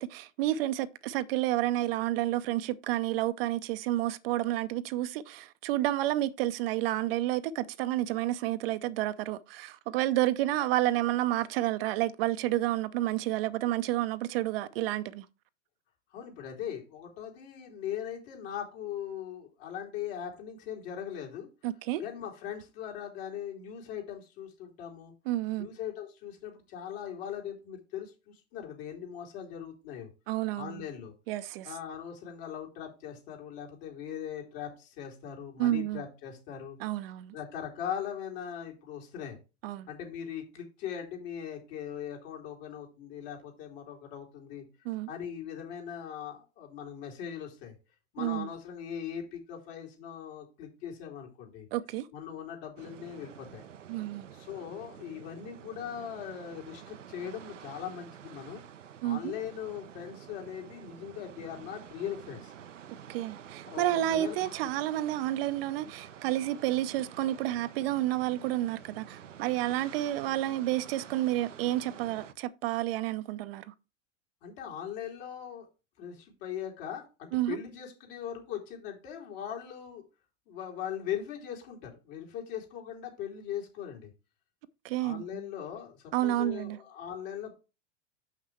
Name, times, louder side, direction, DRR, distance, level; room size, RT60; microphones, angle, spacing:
voice 1, 0.0-15.2 21.6-22.0 25.3-25.7 30.3-30.9 31.3-31.7 35.6-36.0 36.8-37.3 39.6-39.9 44.9-45.1 48.2-48.5 51.7-52.1 53.9-54.3 59.0-59.3 63.1-73.7 77.3-77.6 84.8-85.5 86.1-86.8, right 15 dB, 55° right, 0.6 m, -30 dB
voice 2, 16.1-21.5 22.0-25.1 25.6-30.1 30.6-31.1 31.6-36.8 37.3-39.4 39.9-44.6 45.1-47.7 48.1-51.7 52.1-53.6 54.0-58.6 59.0-62.5 63.7-64.5 74.4-75.7 76.0-80.0 80.5-84.1 85.0-87.5, left 9 dB, 55° left, 3.1 m, -40 dB
sound 1, 52.8-72.3, right 9 dB, 90° right, 0.6 m, -49 dB
6.4 x 5.8 x 4.6 m
hypercardioid pair, 95°, 36 cm